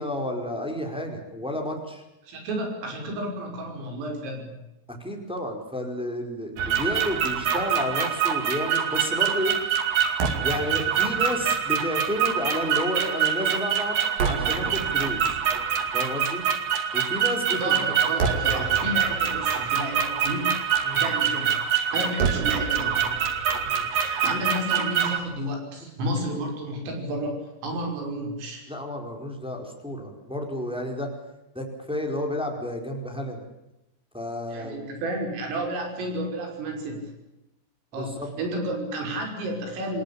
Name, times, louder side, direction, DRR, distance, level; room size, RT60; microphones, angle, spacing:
voice 1, 0.0-2.0 4.9-9.5 10.4-15.4 15.9-16.4 16.9-17.7 20.8-21.0 23.6-23.9 25.8-25.9 26.2-26.3 28.7-31.1 31.5-33.4 34.1-34.9 37.9-38.3, left 1 dB, ahead, 2 dB, 4.1 m, -31 dB
voice 2, 2.2-4.6 17.6-20.5 20.9-21.5 21.9-23.0 23.9-28.7 34.5-37.1 37.9-40.0, right 1 dB, 75° right, 2 dB, 8.4 m, -31 dB
sound 1, 6.6-25.2, right 7 dB, 50° right, 3.5 m, -25 dB
28.0 x 20.0 x 8.6 m, 0.92 s
omnidirectional pair, 5.9 m